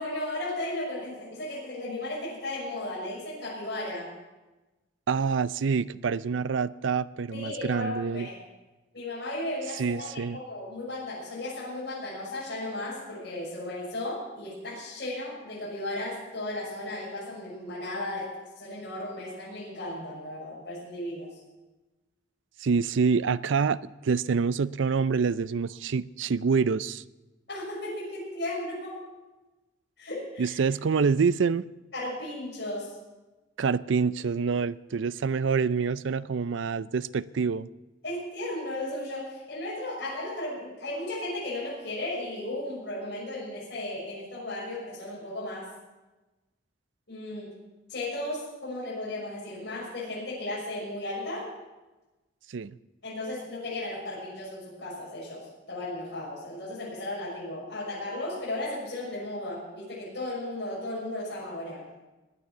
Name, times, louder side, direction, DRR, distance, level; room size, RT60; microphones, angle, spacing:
voice 1, 0.0-4.1 7.3-8.4 8.9-18.3 18.6-21.3 27.5-29.0 30.0-30.6 31.9-32.9 38.0-45.7 47.1-47.5 47.9-51.5 53.0-61.8, left 1 dB, 60° left, -7 dB, 6.5 m, -35 dB
voice 2, 5.1-8.3 9.8-10.4 22.6-27.0 30.4-31.6 33.6-37.7 52.5-52.7, right 5 dB, 80° right, 17 dB, 0.4 m, -26 dB
19.5 x 9.9 x 6.0 m, 1.1 s
head